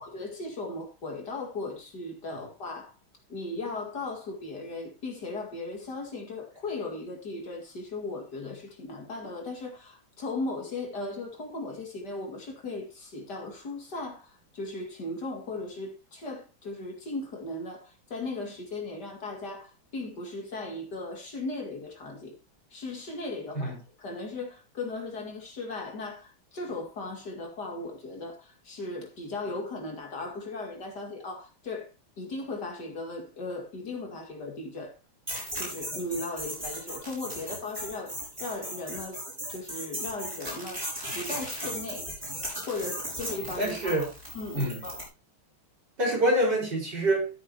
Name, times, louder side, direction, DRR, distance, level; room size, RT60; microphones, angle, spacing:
voice 1, 0.0-2.9 3.3-22.3 22.7-31.9 32.2-34.9 35.6-39.2 39.5-40.9 41.1-42.1 42.7-44.1 44.3-45.0, left 2 dB, 55° left, 2.6 m, -37 dB
sound 1, 35.3-45.1, equal, 15° right, 6.3 m, -37 dB
voice 2, 43.6-44.1 44.5-44.8 46.0-47.3, right 1 dB, 55° right, 5.0 m, -26 dB
13.5 x 8.0 x 2.8 m
omnidirectional pair, 2.2 m